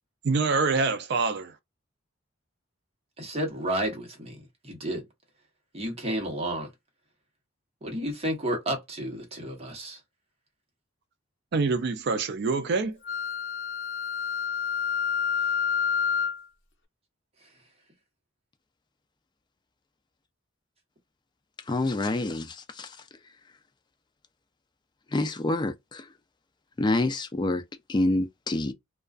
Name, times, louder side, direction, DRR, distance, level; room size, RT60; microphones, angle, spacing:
voice 1, 0.2-1.6 11.5-13.0, right 4 dB, 55° right, 0.4 m, -25 dB
voice 2, 3.2-5.0 5.7-6.7 7.8-10.0, right 1 dB, 30° right, 0.9 m, -31 dB
Wind instrument woodwind instrument, 13.0-16.4, left 7 dB, 60° left, 0.6 m, -28 dB
voice 3, 21.7-23.0 25.1-26.0 26.8-27.6 27.9-28.7, left 2 dB, 20° left, 0.4 m, -27 dB
2.4 x 2.3 x 2.3 m
head